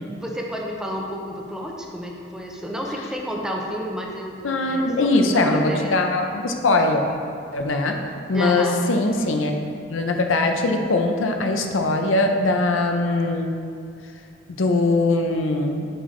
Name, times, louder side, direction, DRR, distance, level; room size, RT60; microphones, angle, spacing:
voice 1, 0.1-6.0 8.3-8.8, equal, 5° right, -1 dB, 0.7 m, -31 dB
voice 2, 4.4-7.0 7.5-8.0 8.3-9.5 9.9-13.6 14.5-15.9, left 2 dB, 80° left, 4 dB, 0.6 m, -21 dB
7.4 x 6.9 x 3.2 m, 2.4 s
head